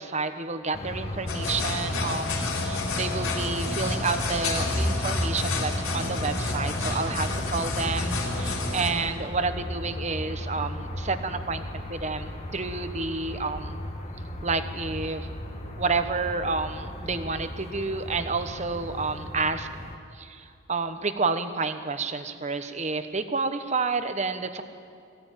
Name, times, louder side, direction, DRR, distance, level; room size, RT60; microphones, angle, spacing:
voice 1, 0.0-13.8 14.4-15.3 15.8-19.7 20.1-24.6, right 4 dB, 35° right, 9 dB, 1.0 m, -30 dB
sound 1, 0.7-20.0, left 1 dB, 30° left, 1.4 m, -35 dB
sound 2, 1.3-8.9, left 2 dB, 90° left, 4.4 m, -29 dB
22.0 x 16.0 x 9.1 m, 2.4 s
head